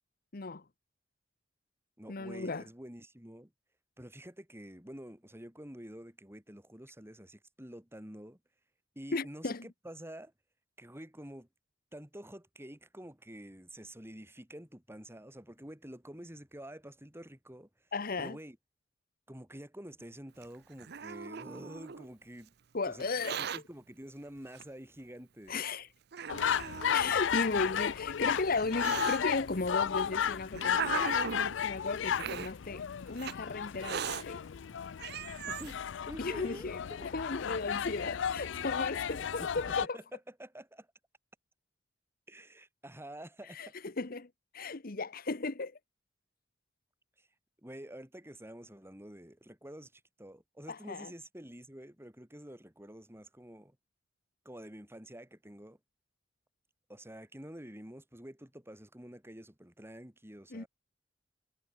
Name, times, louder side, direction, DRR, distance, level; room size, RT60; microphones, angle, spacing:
voice 1, 0.3-0.6 2.1-2.7 9.1-9.7 17.9-18.4 22.7-23.4 25.5-25.9 26.9-31.1 31.6-32.8 33.1-34.4 36.2-40.0 43.5-45.8 50.7-51.1 60.5-60.6, left 3 dB, 55° left, 1.1 m, -35 dB
voice 2, 2.0-3.5 4.0-8.4 8.9-10.3 10.8-11.5 11.9-17.7 18.2-18.6 19.3-22.5 22.9-23.1 23.4-25.6 32.2-32.5 35.5-35.8 36.1-37.1 39.2-39.3 39.9-40.9 42.3-43.7 47.2-47.3 47.6-53.8 54.4-55.8 56.9-60.7, right 1 dB, 15° right, 6.6 m, -48 dB
Hiss, 20.4-22.1 23.0-23.6 24.6-24.7 25.5-25.6 26.1-27.1 28.0-29.2 30.0-31.5 32.1-32.5 33.2-33.3 33.8-34.2 34.7-34.8 35.0-35.7, right 7 dB, 60° right, 0.7 m, -38 dB
sound 1, 26.3-39.9, left 8 dB, 80° left, 0.4 m, -34 dB
head